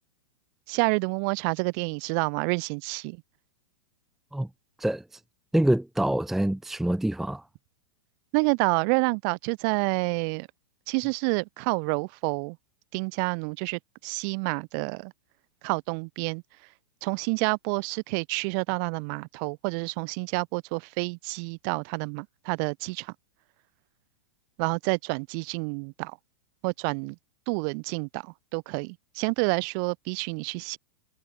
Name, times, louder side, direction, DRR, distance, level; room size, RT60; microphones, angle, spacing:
voice 1, 0.7-3.2 8.3-10.5 10.9-12.6 12.9-15.1 15.6-16.4 17.0-23.1 24.6-26.2 26.6-27.2 27.5-30.8, right 40 dB or more, 50° right, 3.0 m, -28 dB
voice 2, 5.5-7.4, right 1 dB, ahead, 0.6 m, -25 dB
hypercardioid pair, 120°, 14 cm